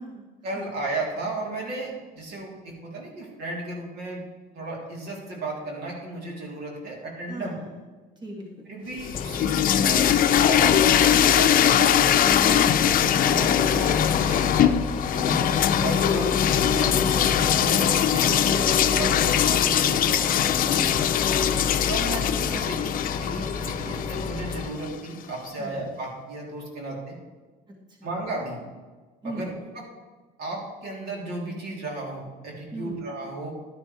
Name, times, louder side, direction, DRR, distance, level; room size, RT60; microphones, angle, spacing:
voice 1, 0.4-4.2 4.5-7.6 8.7-10.1 10.4-12.1 12.8-13.0 13.2-14.8 15.1-20.3 21.9-27.2 28.0-28.6 29.2-29.5 29.8-29.9 30.4-33.5, right 2 dB, 70° right, -2 dB, 3.5 m, -34 dB
voice 2, 7.3-8.7 12.4-12.8 15.2-15.5 20.6-21.5 23.8-24.1 25.6-25.8 27.7-28.1 29.2-29.5 32.7-33.0, right 2 dB, 25° right, 0 dB, 2.0 m, -38 dB
sound 1, 9.0-25.0, left 10 dB, 55° left, 0.6 m, -22 dB
Engine, 9.1-24.7, left 5 dB, 35° left, 1.0 m, -31 dB
11.5 x 11.0 x 3.4 m, 1.3 s
cardioid pair, 110°, 17 cm